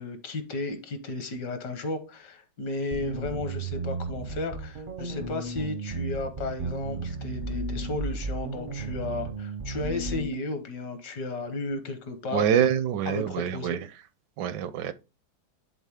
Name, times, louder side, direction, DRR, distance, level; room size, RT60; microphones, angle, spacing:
voice 1, 0.0-12.5 13.0-13.8, left 2 dB, 65° left, 1.7 m, -34 dB
sound 1, 2.9-3.5 5.1-5.7 7.4-8.0 9.8-10.4, left 6 dB, 85° left, 1.7 m, -39 dB
sound 2, 2.9-10.3, right 4 dB, 55° right, 0.5 m, -34 dB
voice 2, 12.3-13.8 14.4-14.9, right 9 dB, 75° right, 1.2 m, -25 dB
10.5 x 3.9 x 3.6 m
omnidirectional pair, 1.9 m